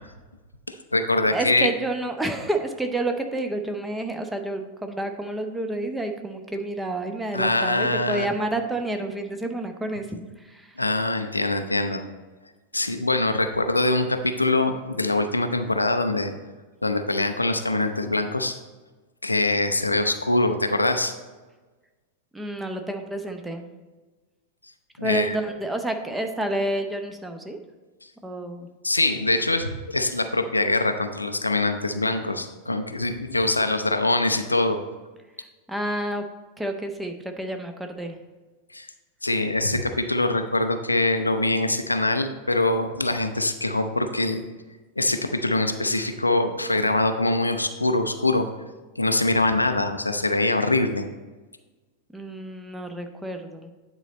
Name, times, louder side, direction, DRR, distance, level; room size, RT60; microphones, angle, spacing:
voice 1, 0.7-1.7 7.3-8.3 10.8-12.0 12.7-16.3 16.8-18.6 19.2-21.1 25.0-25.4 28.8-34.8 38.7-38.9 39.2-44.5 45.0-48.5 49.0-51.1, left 2 dB, 85° left, 8 dB, 0.5 m, -23 dB
voice 2, 1.2-10.7 22.3-23.7 25.0-27.6 28.2-28.7 35.7-36.2 36.6-38.2 52.1-53.7, right 1 dB, 5° right, 5 dB, 0.7 m, -29 dB
9.1 x 4.0 x 4.2 m, 1.3 s
figure-of-eight pair, 90°, 0 cm